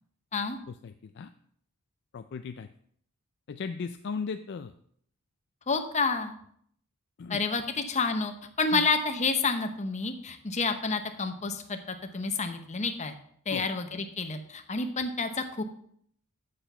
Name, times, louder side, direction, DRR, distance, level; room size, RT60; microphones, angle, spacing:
voice 1, 0.7-1.3 2.1-2.7 3.5-4.7 7.2-7.4 8.7-8.8 13.5-13.7, left 5 dB, 50° left, 9 dB, 0.4 m, -37 dB
voice 2, 5.7-6.3 7.3-8.3 8.6-13.1 13.5-15.6, left 4 dB, 35° left, 7 dB, 0.9 m, -29 dB
8.1 x 6.6 x 5.5 m, 0.64 s
head